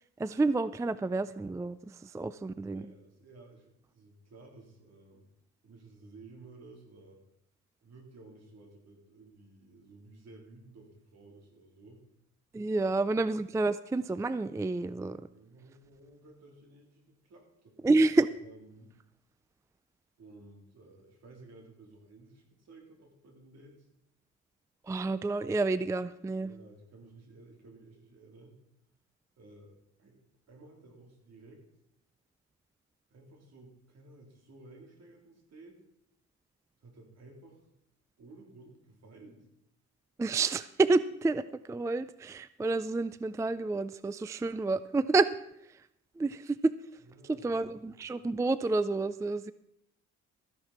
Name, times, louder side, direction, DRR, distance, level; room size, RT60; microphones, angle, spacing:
voice 1, 0.2-2.8 12.5-15.2 17.8-18.3 24.9-26.5 40.2-45.3 46.2-46.7 47.4-49.5, right 3 dB, 10° right, 15 dB, 0.3 m, -29 dB
voice 2, 2.7-5.3 5.6-7.2 7.8-12.0 12.9-13.2 15.3-17.8 18.4-19.0 20.2-23.9 26.4-28.6 29.4-30.2 30.5-31.6 33.1-35.8 36.8-37.7 38.2-39.5 47.0-48.0, right 2 dB, 60° right, 1 dB, 3.7 m, -54 dB
13.5 x 10.5 x 4.3 m, 0.78 s
cardioid pair, 90°, 30 cm